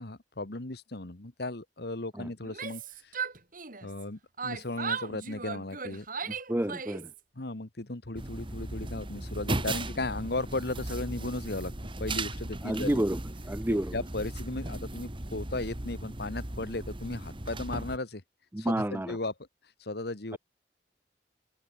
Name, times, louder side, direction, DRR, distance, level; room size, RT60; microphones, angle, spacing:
voice 1, 0.0-3.1 3.8-6.4 7.4-13.0 13.7-18.2 18.6-19.3 19.8-20.4, left 2 dB, 65° left, 1.7 m, -36 dB
Yell, 2.4-4.0 4.4-7.2, right 5 dB, 50° right, 4.9 m, -37 dB
voice 2, 6.5-7.1 12.6-13.2 13.5-13.9 18.5-19.2, right 1 dB, 10° right, 0.7 m, -29 dB
sound 1, 8.2-18.0, right 2 dB, 30° right, 2.0 m, -37 dB
open air
head